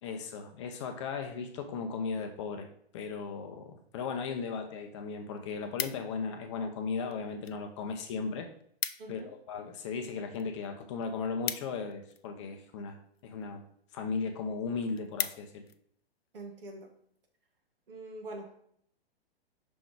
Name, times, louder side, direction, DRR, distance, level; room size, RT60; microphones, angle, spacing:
voice 1, 0.0-2.7 2.9-8.5 9.1-9.2 9.5-13.6 13.9-15.7, left 5 dB, 30° left, 5 dB, 0.6 m, -36 dB
sound 1, 4.6-4.7 5.0-6.4 7.1-7.6 7.9-8.0 8.3-8.4 8.6-9.2 9.6-12.4 13.1-13.5 14.0-14.1 14.4-14.5 14.8-15.8 16.3-16.5, left 8 dB, 70° left, 0.5 m, -39 dB
voice 2, 9.0-9.3 16.3-16.9 17.9-18.6, right 2 dB, 60° right, 2 dB, 1.7 m, -44 dB
6.0 x 3.8 x 4.7 m, 0.67 s
figure-of-eight pair, 115°, 31 cm